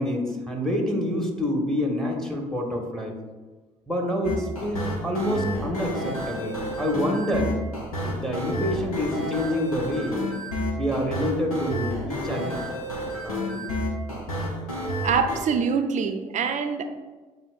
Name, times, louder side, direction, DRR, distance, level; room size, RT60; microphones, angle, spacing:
voice 1, 0.0-3.1 3.9-7.5 8.0-10.2 10.8-12.6 13.2-13.7, left 1 dB, 5° left, 1 dB, 1.1 m, -27 dB
sound 1, 4.2-15.4, equal, 85° left, 0.6 m, -30 dB
voice 2, 15.0-16.8, right 6 dB, 45° right, 7 dB, 0.5 m, -24 dB
7.3 x 2.8 x 2.4 m, 1.3 s
figure-of-eight pair, 50°, 18 cm